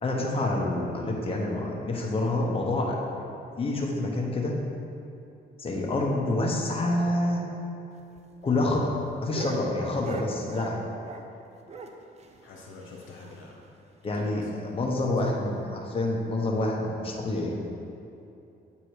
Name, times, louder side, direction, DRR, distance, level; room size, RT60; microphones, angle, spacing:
voice 1, 0.0-3.2 3.6-4.6 5.6-7.4 8.4-8.8 9.2-10.8 14.0-17.6, left 2 dB, 30° left, -1 dB, 0.9 m, -27 dB
sound 1, 7.9-11.4 11.7-13.7 14.0-14.1 14.3-14.4 14.8-14.9 15.5-15.8 16.6-16.8, right 4 dB, 35° right, 0.5 m, -42 dB
voice 2, 12.4-13.6 14.1-14.5, left 3 dB, 85° left, -1 dB, 0.9 m, -45 dB
7.9 x 2.8 x 4.8 m, 2.7 s
cardioid pair, 90°, 20 cm